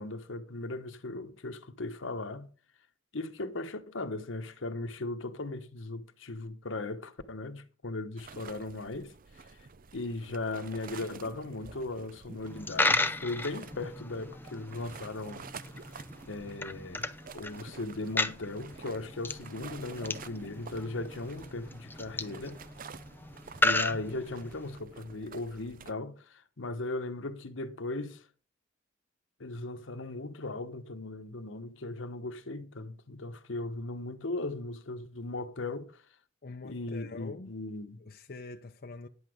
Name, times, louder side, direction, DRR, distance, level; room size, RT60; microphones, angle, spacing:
voice 1, 0.0-2.5 3.1-9.1 9.9-15.5 16.3-22.6 23.6-28.3 29.4-36.0 36.6-38.0, left 2 dB, 75° left, 1.1 m, -38 dB
sound 1, 8.2-25.9, right 5 dB, 45° right, 0.6 m, -50 dB
Coin (dropping), 12.5-24.8, left 2 dB, 10° left, 0.6 m, -35 dB
voice 2, 36.4-37.5 38.0-39.1, left 3 dB, 50° left, 0.7 m, -45 dB
10.5 x 8.0 x 5.1 m
head